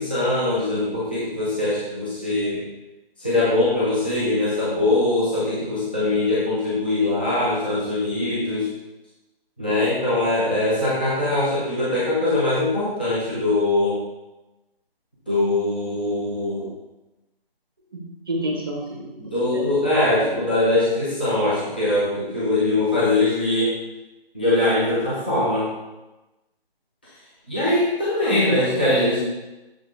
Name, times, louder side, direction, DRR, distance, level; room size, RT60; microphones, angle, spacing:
voice 1, 0.0-2.6 3.2-8.7 9.6-14.0 15.3-16.7 19.2-23.7 24.3-25.7 27.5-29.2, left 2 dB, 10° left, -10 dB, 0.6 m, -22 dB
voice 2, 17.9-19.0 19.5-19.7 20.1-20.4 28.2-28.8, right 1 dB, 25° right, 0 dB, 0.8 m, -29 dB
6.7 x 5.1 x 3.3 m, 1.0 s
figure-of-eight pair, 170°, 30 cm